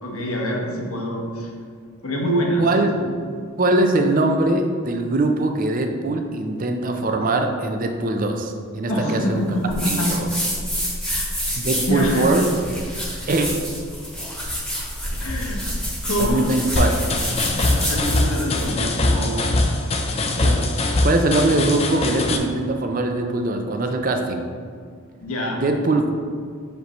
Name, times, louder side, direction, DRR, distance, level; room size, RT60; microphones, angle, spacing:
voice 1, 0.0-1.5 2.0-2.7 3.0-3.1 8.8-10.1 11.1-11.3 11.9-12.3 15.2-15.7 16.0-16.4 17.5-19.4 25.2-25.6, equal, 80° left, -1 dB, 1.1 m, -25 dB
voice 2, 2.6-3.0 3.6-9.4 9.9-10.3 11.5-12.4 13.3-13.5 16.2-17.1 19.6-19.8 20.4-24.5 25.5-26.1, right 2 dB, 40° right, 5 dB, 0.5 m, -22 dB
sound 1, 9.7-18.7, equal, ahead, 1.2 m, -28 dB
sound 2, 16.8-22.4, left 2 dB, 30° left, 0.4 m, -22 dB
6.7 x 5.1 x 3.0 m, 2.1 s
head